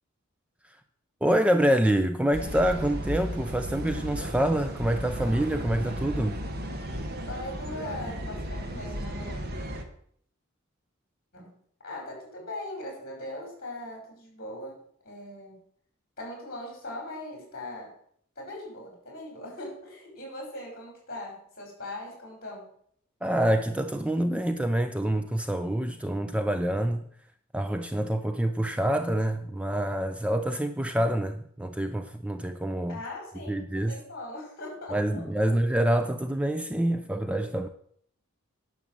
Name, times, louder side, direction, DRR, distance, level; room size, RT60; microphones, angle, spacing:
voice 1, 1.2-6.4 23.2-27.0 27.5-33.0 33.5-34.0 34.9-37.7, right 1 dB, 5° right, 0.5 m, -26 dB
sound 1, 2.3-9.8, equal, 50° right, 1.4 m, -34 dB
voice 2, 7.3-9.4 11.3-11.5 11.8-14.8 15.0-15.6 16.2-17.9 18.4-22.7 32.9-35.5, left 1 dB, 45° left, 5.7 m, -40 dB
11.0 x 6.3 x 7.4 m
head